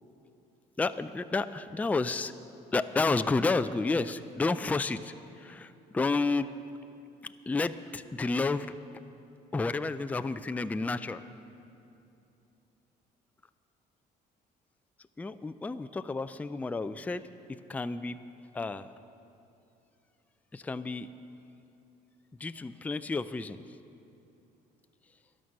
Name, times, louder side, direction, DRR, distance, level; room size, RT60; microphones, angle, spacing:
voice 1, 0.8-2.3 2.7-5.1 5.4-6.5 7.5-8.7 9.5-11.2 15.2-17.2 17.7-18.2 18.5-18.9 20.5-21.1 22.4-23.6, left 3 dB, 10° left, 11 dB, 0.3 m, -30 dB
12.5 x 11.0 x 6.5 m, 2.7 s
cardioid pair, 110°, 17 cm